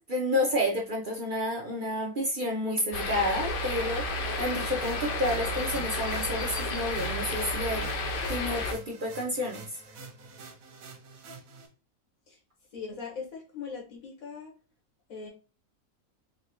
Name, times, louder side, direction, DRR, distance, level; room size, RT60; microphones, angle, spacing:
voice 1, 0.0-7.9 8.3-9.8, left 1 dB, 45° right, -1 dB, 0.7 m, -30 dB
sound 1, 2.9-8.7, left 2 dB, 60° left, 0.5 m, -32 dB
sound 2, 4.8-11.7, right 4 dB, 90° right, 1.2 m, -47 dB
voice 2, 12.7-14.5 15.1-15.3, left 5 dB, 75° left, 0 dB, 1.6 m, -40 dB
4.1 x 2.4 x 2.8 m, 0.32 s
omnidirectional pair, 1.4 m